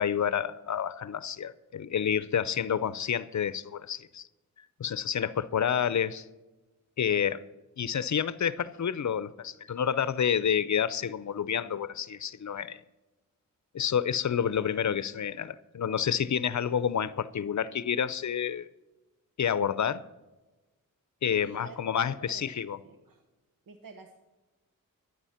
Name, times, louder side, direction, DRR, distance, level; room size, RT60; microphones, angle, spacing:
voice 1, 0.0-4.3 4.8-6.3 7.0-7.4 7.8-12.8 13.7-18.7 19.4-20.0 21.2-22.8, left 8 dB, 55° left, 0.6 m, -29 dB
voice 2, 21.3-21.8 22.3-22.5 22.8-23.2 23.7-24.2, right 4 dB, 80° right, 1.2 m, -48 dB
12.5 x 9.7 x 5.7 m
wide cardioid pair, 85°, 33 cm